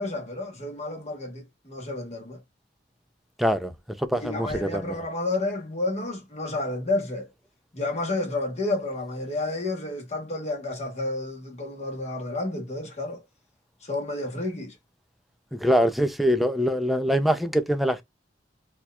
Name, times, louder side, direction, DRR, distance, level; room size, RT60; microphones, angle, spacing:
voice 1, 0.0-2.4 4.1-7.3 7.7-13.2 13.8-14.7, left 2 dB, 40° left, 1.1 m, -30 dB
voice 2, 3.4-3.7 4.1-4.8 15.6-18.0, equal, ahead, 0.4 m, -23 dB
4.3 x 2.3 x 2.2 m
head